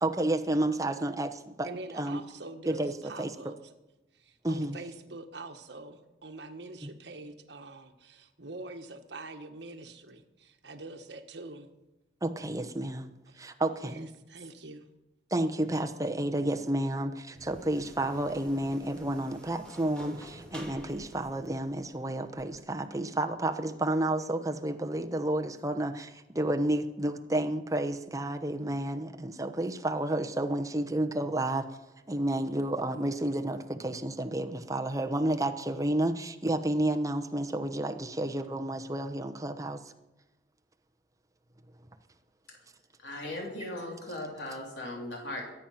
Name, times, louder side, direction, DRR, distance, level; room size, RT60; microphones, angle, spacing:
voice 1, 0.0-1.7 1.9-2.2 2.7-3.5 4.4-4.8 6.8-6.9 12.2-14.1 15.3-31.7 32.1-39.8, right 1 dB, 15° right, 5 dB, 0.9 m, -31 dB
voice 2, 1.6-3.5 4.2-11.7 13.3-13.4 13.8-14.8, right 2 dB, 65° right, 5 dB, 1.5 m, -45 dB
sound 1, 17.3-22.5, equal, 5° left, 2.3 m, -49 dB
voice 3, 43.0-45.5, left 1 dB, 75° left, -1 dB, 3.5 m, -38 dB
22.5 x 9.1 x 5.8 m, 0.98 s
head